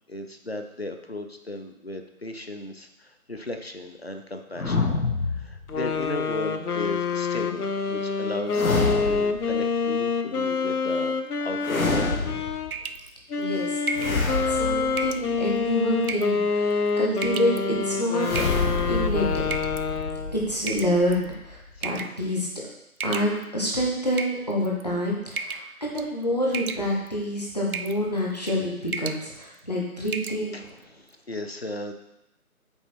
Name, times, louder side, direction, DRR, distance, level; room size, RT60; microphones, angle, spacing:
voice 1, 0.1-4.9 5.3-12.2 21.8-21.9 30.5-31.9, left 2 dB, 45° left, 6 dB, 0.6 m, -36 dB
sound 1, 4.6-6.1 8.5-9.6 11.6-12.8 13.9-15.7 18.2-21.8, left 3 dB, 65° left, 1.1 m, -28 dB
sound 2, 5.7-12.7 13.3-20.5, left 5 dB, 85° left, 0.8 m, -27 dB
sound 3, 12.7-13.1 13.9-14.2 15.0-15.3 16.0-16.4 17.2-17.6 18.4-18.8 19.5-19.8 20.7-21.2 21.8-22.2 23.0-23.7 24.1-24.8 25.4-25.7 26.0-26.2 26.5-27.1 27.7-28.0 28.3-28.6 28.9-29.2 29.6-29.7 30.1-30.4, right 4 dB, 70° right, 0.6 m, -33 dB
voice 2, 13.4-14.2 14.5-17.5 17.8-18.3 18.9-19.4 20.3-22.7 23.0-30.7, equal, 30° left, -4 dB, 1.1 m, -27 dB
6.9 x 4.4 x 4.4 m, 0.86 s
figure-of-eight pair, 180°, 44 cm